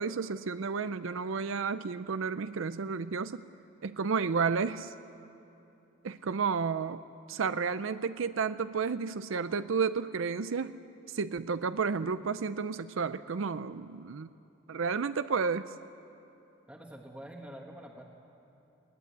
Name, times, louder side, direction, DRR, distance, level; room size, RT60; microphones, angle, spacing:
voice 1, 0.0-3.4 3.8-4.9 6.0-7.0 7.3-10.7 11.1-14.3 14.7-15.7, right 5 dB, 80° right, 13 dB, 0.5 m, -31 dB
voice 2, 16.7-18.0, right 1 dB, 5° right, -1 dB, 1.4 m, -46 dB
21.0 x 18.5 x 9.3 m, 2.8 s
head